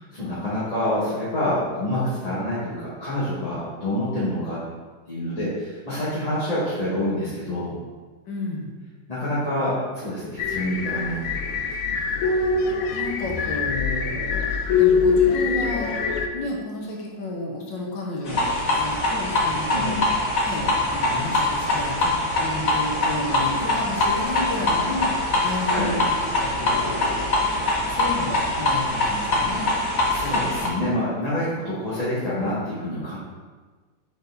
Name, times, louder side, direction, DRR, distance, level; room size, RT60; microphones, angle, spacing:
voice 1, 0.1-4.6 5.1-7.7 9.1-11.2 11.4-11.5 11.8-12.0 19.7-20.0 25.7-25.9 30.1-33.2, left 1 dB, 20° left, -12 dB, 1.9 m, -27 dB
voice 2, 8.3-8.7 12.9-16.0 16.3-20.0 20.4-25.1 25.4-27.4 27.9-29.7, left 2 dB, 80° left, -2 dB, 1.9 m, -32 dB
sound 1, 10.4-16.3, left 5 dB, 65° left, 0.9 m, -23 dB
sound 2, 18.3-30.7, left 2 dB, 50° left, 1.7 m, -23 dB
6.9 x 5.1 x 4.1 m, 1.4 s
omnidirectional pair, 2.0 m